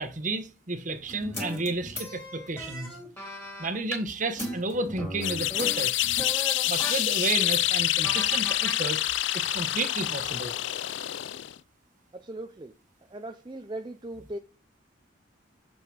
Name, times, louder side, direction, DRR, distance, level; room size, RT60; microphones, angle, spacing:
voice 1, 0.0-2.9 3.6-6.0 6.7-9.0 9.3-10.5, right 2 dB, 40° right, 1.2 m, -32 dB
sound 1, 1.0-4.0 4.4-7.0 7.4-7.6 8.0-8.8, equal, 10° left, 3.3 m, -38 dB
sound 2, 5.2-11.6, left 14 dB, 65° left, 0.4 m, -27 dB
voice 2, 12.1-12.7 13.1-14.4, right 1 dB, 25° right, 0.6 m, -38 dB
7.0 x 5.9 x 6.3 m
head